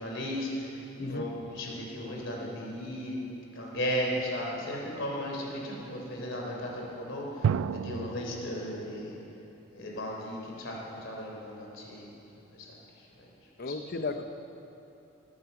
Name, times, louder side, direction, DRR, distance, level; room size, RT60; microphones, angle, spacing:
voice 1, 0.0-3.2 3.5-7.5 7.7-9.2 9.7-12.1 12.5-12.8 13.2-13.3 13.6-13.8, equal, 65° left, -1 dB, 3.6 m, -35 dB
sound 1, 1.4-2.7 7.4-9.3, right 7 dB, 85° right, 0.3 m, -34 dB
voice 2, 13.6-14.2, left 3 dB, 50° left, 8 dB, 0.7 m, -34 dB
20.0 x 9.9 x 7.1 m, 3.0 s
head